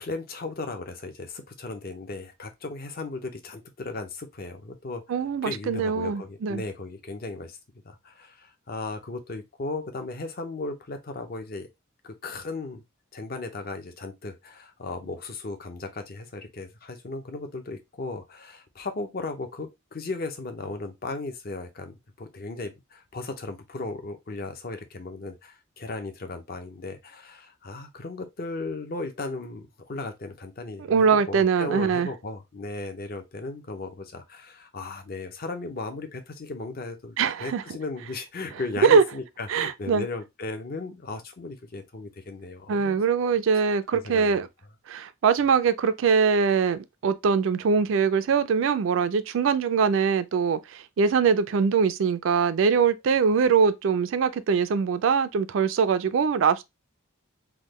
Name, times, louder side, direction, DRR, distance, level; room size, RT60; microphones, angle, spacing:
voice 1, 0.0-5.0 5.4-7.6 7.8-11.7 12.0-12.8 13.1-30.8 31.1-43.0 43.9-44.4, left 3 dB, 45° left, 0.6 m, -36 dB
voice 2, 5.1-6.6 30.9-32.1 37.2-37.6 38.8-39.0 39.5-40.0 42.7-44.5 44.9-56.6, right 6 dB, 60° right, 0.3 m, -22 dB
3.6 x 2.1 x 3.0 m
head